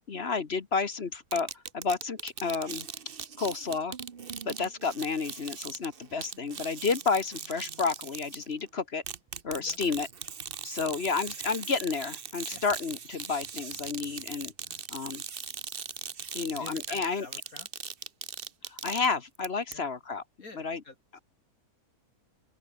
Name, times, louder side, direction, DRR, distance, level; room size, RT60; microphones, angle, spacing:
voice 1, 0.1-2.9 3.4-4.0 4.4-9.0 9.4-10.1 10.6-14.5 14.9-15.2 16.3-17.3 18.7-20.2 20.6-20.8, left 4 dB, 45° left, 1.4 m, -31 dB
sound 1, 1.3-8.6 9.1-19.5 19.7-19.8, right 6 dB, 40° right, 1.1 m, -40 dB
voice 2, 9.5-9.8 10.7-10.9 12.5-12.6 14.6-14.8 16.5-17.7 19.7-19.9 20.4-21.0, left 3 dB, 65° left, 4.7 m, -49 dB
open air
omnidirectional pair, 1.6 m